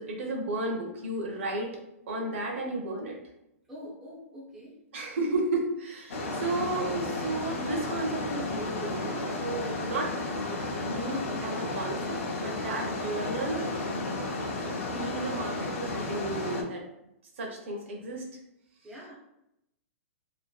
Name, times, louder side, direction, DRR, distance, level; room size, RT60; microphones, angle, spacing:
voice 1, 0.0-1.7 2.1-3.2 4.9-10.1 10.5-12.2 12.4-16.8 17.4-18.4, right 2 dB, 55° right, 1 dB, 0.6 m, -33 dB
voice 2, 3.7-4.7 18.8-19.1, equal, 5° right, -9 dB, 0.4 m, -44 dB
sound 1, 6.1-16.6, left 2 dB, 60° left, 0.5 m, -33 dB
2.5 x 2.4 x 2.2 m, 0.83 s
hypercardioid pair, 175°, 8 cm